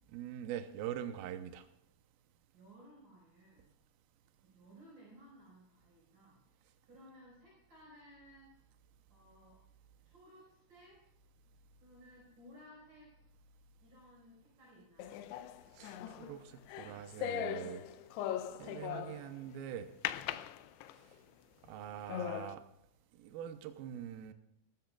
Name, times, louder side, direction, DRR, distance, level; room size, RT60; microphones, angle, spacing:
voice 1, 0.1-1.7 15.7-17.8 18.6-19.9 21.7-22.6 23.2-24.3, right 10 dB, 85° right, 8 dB, 2.2 m, -43 dB
voice 2, 2.5-3.7 4.4-6.4 6.8-8.5 9.1-9.6 10.0-11.0 11.8-13.1 13.8-15.2, equal, 45° right, -5 dB, 6.2 m, -59 dB
sound 1, 15.0-19.4 20.1-21.2 21.7-21.8 22.1-22.6, left 11 dB, 85° left, 2.3 m, -40 dB
19.0 x 15.0 x 2.4 m, 0.83 s
omnidirectional pair, 5.3 m